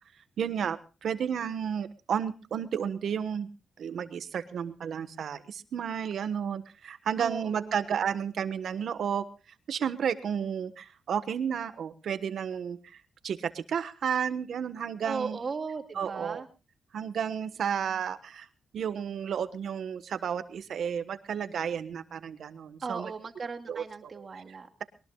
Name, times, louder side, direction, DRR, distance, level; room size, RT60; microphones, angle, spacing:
voice 1, 0.4-3.5 3.8-9.2 9.7-13.0 13.2-15.4 15.9-16.4 16.9-18.5 18.7-23.1 23.7-24.8, right 8 dB, 70° right, 11 dB, 1.3 m, -32 dB
voice 2, 7.2-7.8 15.0-16.5 17.6-18.0 22.8-24.7, right 4 dB, 45° right, 5 dB, 2.2 m, -37 dB
22.0 x 19.0 x 2.4 m, 0.31 s
cardioid pair, 85°, 0 cm